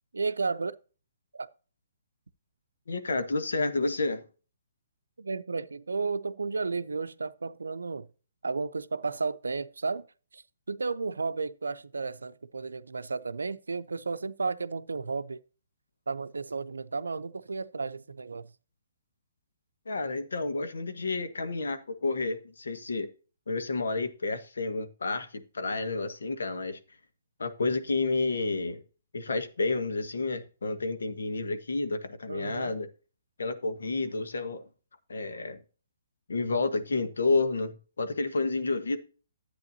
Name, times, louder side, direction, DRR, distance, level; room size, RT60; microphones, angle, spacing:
voice 1, 0.1-0.7 1.3-1.5 5.2-8.1 8.4-10.1 10.3-15.4 16.1-18.5 32.3-32.7, right 4 dB, 85° right, 0.5 m, -33 dB
voice 2, 2.9-4.2 19.9-23.1 23.5-26.8 27.4-28.8 29.1-32.9 33.4-34.6 35.1-35.6 36.3-39.0, left 3 dB, 80° left, 1.2 m, -30 dB
11.0 x 8.4 x 2.7 m
hypercardioid pair, 140°, 0 cm